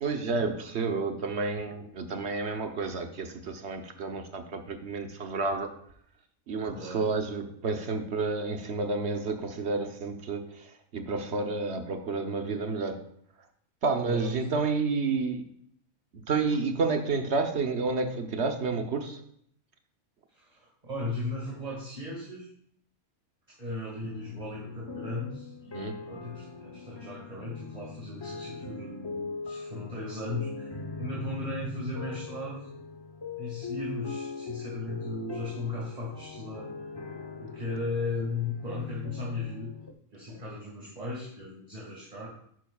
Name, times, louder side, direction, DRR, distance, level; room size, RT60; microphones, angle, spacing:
voice 1, 0.0-5.7 6.5-13.0 13.8-15.4 16.3-19.2 25.7-26.0 40.3-40.4, right 4 dB, 55° right, 6 dB, 1.1 m, -30 dB
voice 2, 6.7-7.1 14.0-14.5 20.3-22.5 23.6-32.7 33.4-37.0 37.4-39.7 40.1-42.3, left 2 dB, 30° right, -4 dB, 2.0 m, -36 dB
sound 1, 23.9-39.9, left 4 dB, 30° left, 0.5 m, -41 dB
11.0 x 9.0 x 2.4 m, 0.67 s
omnidirectional pair, 1.5 m